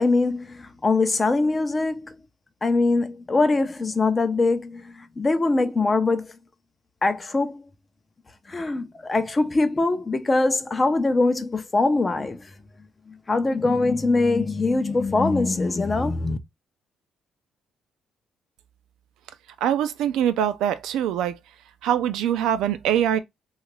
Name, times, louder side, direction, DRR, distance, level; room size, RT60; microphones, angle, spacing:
voice 1, 0.0-2.2 2.6-6.3 7.0-7.6 8.5-12.5 13.1-16.4, left 3 dB, 25° left, 0.5 m, -22 dB
voice 2, 19.6-21.4 21.8-23.2, right 10 dB, 90° right, 0.4 m, -23 dB
2.8 x 2.4 x 3.0 m
cardioid pair, 90°, 0 cm